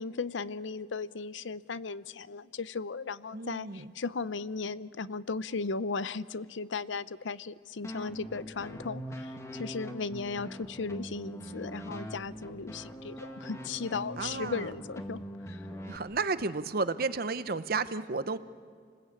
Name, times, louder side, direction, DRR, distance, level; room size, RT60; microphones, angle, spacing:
voice 1, 0.0-15.2 15.5-15.6, left 4 dB, 75° left, 16 dB, 0.6 m, -36 dB
voice 2, 3.3-3.9 14.2-14.7 15.9-18.4, right 4 dB, 50° right, 13 dB, 0.8 m, -32 dB
sound 1, 7.8-16.0, equal, 15° left, 1.7 m, -42 dB
28.5 x 20.0 x 8.6 m, 2.1 s
head